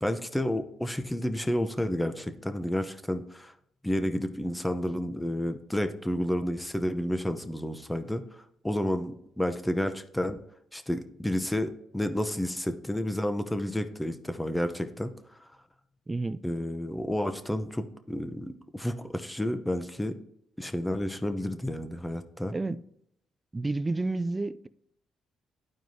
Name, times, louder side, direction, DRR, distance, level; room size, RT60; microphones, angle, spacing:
voice 1, 0.0-3.5 3.8-8.2 8.6-10.4 10.7-15.1 15.4-15.5 16.4-20.2 20.6-22.5, left 1 dB, 5° left, 0.7 m, -30 dB
voice 2, 16.1-16.4 22.5-22.8 23.5-24.7, right 2 dB, 20° right, 0.4 m, -30 dB
12.0 x 4.6 x 2.7 m
cardioid pair, 90°, 0 cm